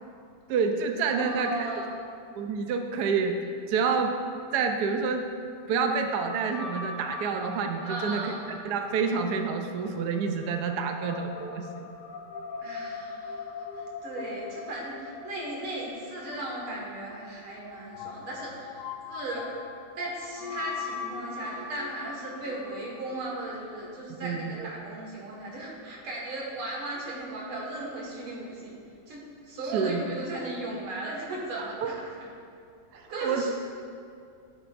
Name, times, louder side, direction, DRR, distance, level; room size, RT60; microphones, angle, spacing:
voice 1, 0.5-1.6 2.4-3.4 3.7-4.1 4.5-5.3 5.7-11.8 24.2-24.7 29.7-30.1 31.6-31.9 32.9-33.5, right 5 dB, 65° right, 4 dB, 1.0 m, -28 dB
voice 2, 1.1-2.0 7.8-8.4 12.6-19.5 20.0-28.8 29.1-29.2 29.5-32.1 32.9-33.5, right 2 dB, 85° right, -3 dB, 2.7 m, -36 dB
sound 1, 5.9-24.0, left 5 dB, 70° left, 1.1 m, -41 dB
13.0 x 7.8 x 2.6 m, 2.4 s
omnidirectional pair, 2.3 m